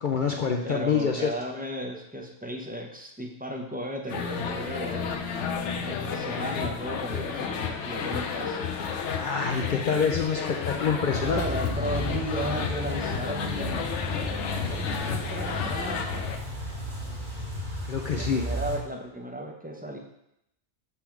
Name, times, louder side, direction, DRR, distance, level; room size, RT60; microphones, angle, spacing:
voice 1, 0.0-1.3 9.1-11.4 17.9-18.4, left 6 dB, 55° left, 2 dB, 0.7 m, -26 dB
voice 2, 0.6-5.2 5.8-8.6 11.2-13.8 14.7-16.3 18.2-20.0, equal, 10° right, 0 dB, 0.7 m, -35 dB
sound 1, 4.1-16.4, left 6 dB, 90° left, 1.0 m, -32 dB
sound 2, 11.1-18.8, equal, 45° right, 1.7 m, -34 dB
6.9 x 3.5 x 5.9 m, 0.81 s
omnidirectional pair, 1.2 m